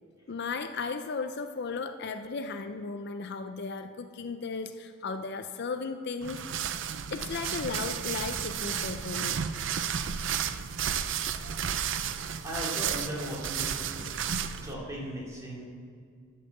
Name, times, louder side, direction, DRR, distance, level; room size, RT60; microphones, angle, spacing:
voice 1, 0.3-6.7 7.1-9.4 11.4-11.7, left 4 dB, 50° left, 8 dB, 0.5 m, -36 dB
sound 1, 6.2-14.7, right 8 dB, 60° right, 0.5 m, -32 dB
voice 2, 12.4-14.2 14.6-15.6, equal, 15° right, -4 dB, 2.5 m, -37 dB
10.5 x 5.5 x 7.6 m, 2.2 s
head